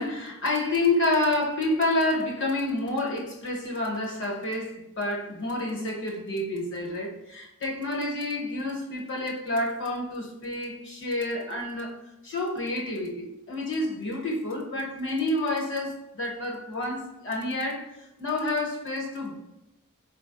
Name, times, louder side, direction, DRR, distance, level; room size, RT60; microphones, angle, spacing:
voice 1, 0.0-17.9 18.2-19.3, left 2 dB, 60° left, 1.3 m, -29 dB
4.6 x 2.5 x 3.7 m
head